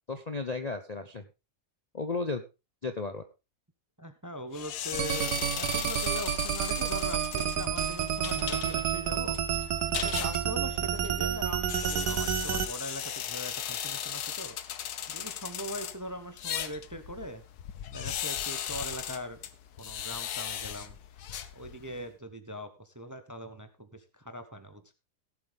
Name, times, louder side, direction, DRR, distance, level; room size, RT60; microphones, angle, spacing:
voice 1, 0.1-1.2 1.9-2.4 2.8-3.2, left 3 dB, 35° left, 7 dB, 0.7 m, -34 dB
voice 2, 4.0-9.4 9.9-14.6 15.1-17.4 17.9-19.4 19.8-21.0 21.5-24.9, equal, 15° right, 10 dB, 0.8 m, -41 dB
sound 1, 4.5-22.0, left 10 dB, 75° left, 1.4 m, -38 dB
sound 2, 4.9-12.7, right 9 dB, 80° right, 1.4 m, -30 dB
17.5 x 7.7 x 3.5 m, 0.28 s
omnidirectional pair, 1.7 m